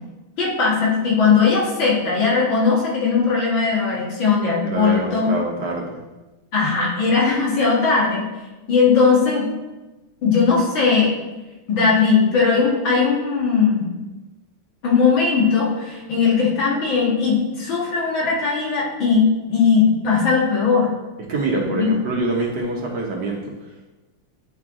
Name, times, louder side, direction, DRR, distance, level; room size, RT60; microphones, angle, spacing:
voice 1, 0.4-5.3 6.5-8.3 8.7-9.5 10.2-11.1 11.7-13.9 14.8-20.9 21.6-21.9, left 5 dB, 65° left, -5 dB, 2.4 m, -18 dB
voice 2, 4.6-6.0 21.3-23.5, right 2 dB, 60° right, -1 dB, 1.5 m, -25 dB
9.7 x 4.6 x 3.7 m, 1.1 s
omnidirectional pair, 2.3 m